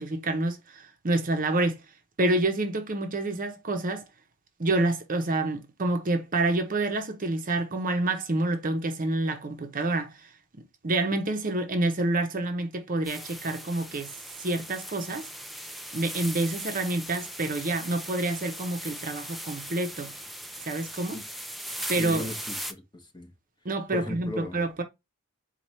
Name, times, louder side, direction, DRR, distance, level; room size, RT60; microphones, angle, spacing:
voice 1, 0.0-1.8 2.2-4.0 4.6-10.3 10.8-15.3 15.9-20.1 20.6-21.2 21.9-22.3 23.6-24.8, right 2 dB, 40° right, 0.8 m, -28 dB
sound 1, 13.0-22.7, equal, ahead, 0.4 m, -39 dB
voice 2, 21.8-23.3 23.9-24.6, left 1 dB, 20° left, 1.0 m, -37 dB
4.7 x 2.3 x 4.2 m
head